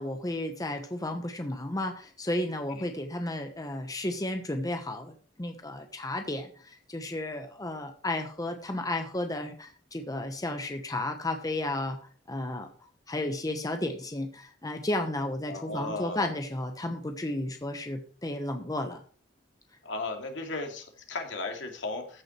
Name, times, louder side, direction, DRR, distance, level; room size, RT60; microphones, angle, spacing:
voice 1, 0.0-12.0 12.3-12.7 13.1-19.0, left 1 dB, 20° left, 5 dB, 1.1 m, -33 dB
voice 2, 15.4-16.3 19.8-22.2, left 2 dB, 80° left, 2 dB, 2.4 m, -36 dB
14.0 x 6.2 x 4.4 m, 0.43 s
head